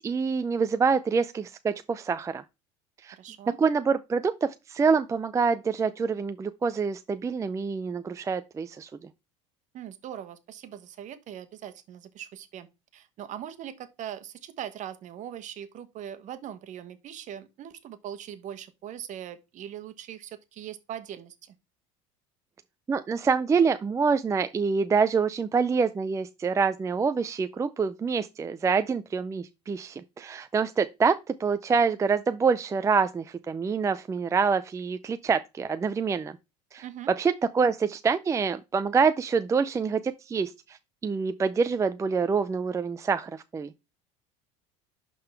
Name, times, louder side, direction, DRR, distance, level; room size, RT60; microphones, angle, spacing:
voice 1, 0.0-2.4 3.0-3.2 3.6-9.1 22.9-36.4 36.7-36.8 37.2-43.7, right 5 dB, 20° right, 0.4 m, -26 dB
voice 2, 3.1-3.6 9.7-12.7 12.9-21.5 36.8-37.1, right 10 dB, 50° right, 1.2 m, -41 dB
11.0 x 3.8 x 3.3 m
supercardioid pair, 95°, 16 cm